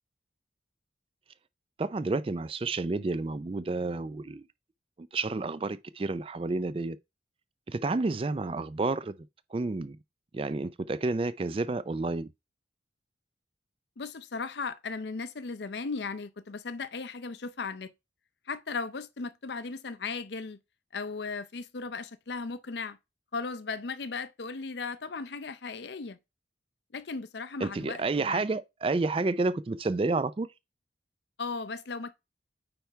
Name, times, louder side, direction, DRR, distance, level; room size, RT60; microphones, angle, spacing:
voice 1, 1.8-4.4 5.0-7.0 7.7-9.1 9.5-10.0 10.3-12.3 27.6-30.5, right 3 dB, 30° right, 0.3 m, -30 dB
voice 2, 14.0-17.9 18.5-20.6 20.9-23.0 23.3-26.2 26.9-28.4 31.4-32.2, left 4 dB, 65° left, 0.6 m, -36 dB
8.9 x 3.4 x 4.5 m
head